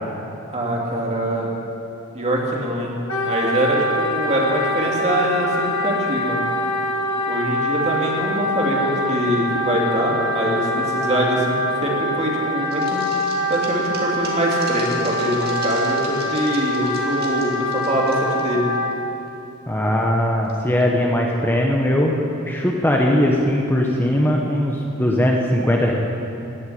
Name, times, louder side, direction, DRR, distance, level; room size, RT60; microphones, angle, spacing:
voice 1, 0.5-1.5 2.1-6.4 7.3-13.0 13.5-18.7, equal, 30° right, -2 dB, 2.6 m, -23 dB
Wind instrument woodwind instrument, 3.1-19.0, left 1 dB, 85° left, 1.7 m, -24 dB
sound 1, 12.7-18.5 18.8-18.9 19.3-19.4 20.5-20.8, right 3 dB, 50° right, 2.6 m, -38 dB
voice 2, 19.7-22.2 22.5-25.9, left 1 dB, 10° left, -1 dB, 1.0 m, -19 dB
16.5 x 7.9 x 9.9 m, 2.8 s
head